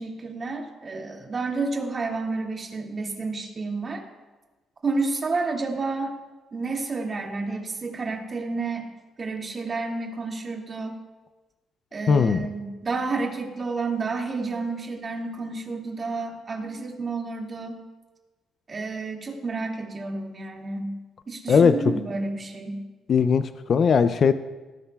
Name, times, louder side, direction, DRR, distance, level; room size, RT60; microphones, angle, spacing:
voice 1, 0.0-4.0 4.8-6.2 6.5-8.9 9.2-10.9 11.9-17.8 18.7-20.9 21.3-22.8, right 3 dB, 40° right, 0 dB, 2.3 m, -30 dB
voice 2, 12.1-12.5 21.5-21.8 23.1-24.3, left 6 dB, 50° left, 11 dB, 0.4 m, -19 dB
18.5 x 11.0 x 2.4 m, 1.2 s
cardioid pair, 90°, 0 cm